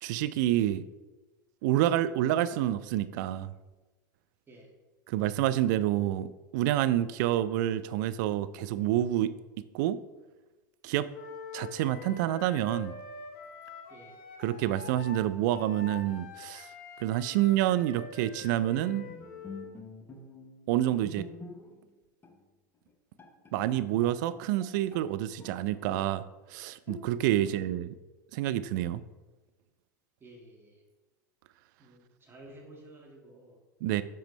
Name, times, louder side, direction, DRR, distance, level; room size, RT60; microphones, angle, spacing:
voice 1, 0.0-0.8 1.6-3.5 5.1-9.3 9.7-10.0 10.8-11.1 11.5-12.9 14.4-16.7 17.0-19.1 20.7-21.3 23.5-26.2 26.5-27.9 28.3-29.0 33.8-34.0, right 13 dB, 60° right, 13 dB, 0.4 m, -28 dB
Wind instrument woodwind instrument, 11.1-19.7, left 5 dB, 55° left, 1.7 m, -45 dB
voice 2, 13.9-14.2 27.4-27.6 30.2-30.8 31.8-33.6, right 1 dB, 20° right, -1 dB, 1.8 m, -52 dB
Bowed string instrument, 18.9-21.9 22.2-22.4 22.9-23.0 23.2-25.1 25.4-26.2 26.9-27.5, left 3 dB, 20° left, 0.8 m, -48 dB
7.5 x 4.3 x 3.1 m, 1.2 s
hypercardioid pair, 90°, 11 cm